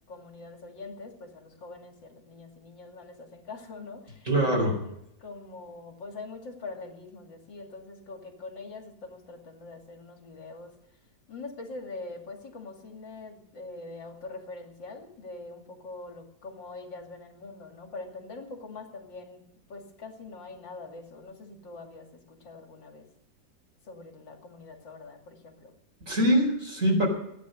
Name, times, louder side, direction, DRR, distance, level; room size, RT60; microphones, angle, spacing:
voice 1, 0.1-10.7 11.3-19.4 19.7-23.1 23.9-25.7, left 3 dB, 70° left, 3 dB, 3.2 m, -43 dB
voice 2, 4.2-4.7 26.0-27.1, equal, 40° right, -1 dB, 4.8 m, -23 dB
16.5 x 10.5 x 6.4 m, 0.79 s
omnidirectional pair, 2.1 m